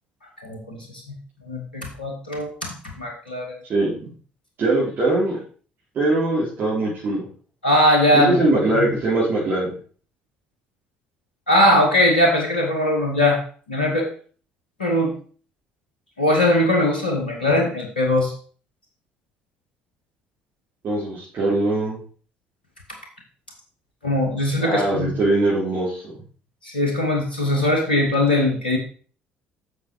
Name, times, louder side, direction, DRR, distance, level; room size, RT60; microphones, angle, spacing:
voice 1, 0.4-1.0 1.5-3.5 7.6-8.4 8.7-8.8 11.5-13.4 13.7-14.1 14.8-15.1 16.2-18.3 24.0-25.1 26.6-28.8, left 1 dB, 85° left, 1 dB, 1.6 m, -20 dB
voice 2, 3.7-4.1 4.6-5.4 6.0-7.2 8.1-9.7 20.8-22.0 24.6-26.1, right 2 dB, 45° right, -8 dB, 3.8 m, -21 dB
7.7 x 6.5 x 4.6 m, 0.42 s
figure-of-eight pair, 50°, 5 cm